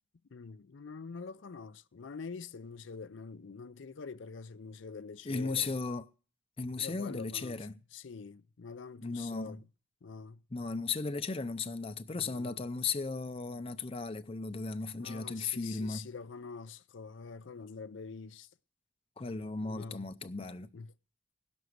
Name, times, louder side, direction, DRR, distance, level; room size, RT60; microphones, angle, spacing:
voice 1, 0.3-5.7 6.8-9.6 10.0-10.4 12.1-12.6 15.0-18.5 19.6-20.1 20.7-20.9, left 5 dB, 75° left, 0.5 m, -46 dB
voice 2, 5.2-6.1 6.6-7.7 9.0-9.6 10.5-16.1 19.2-20.7, left 4 dB, 30° left, 0.6 m, -36 dB
17.5 x 6.2 x 7.8 m
head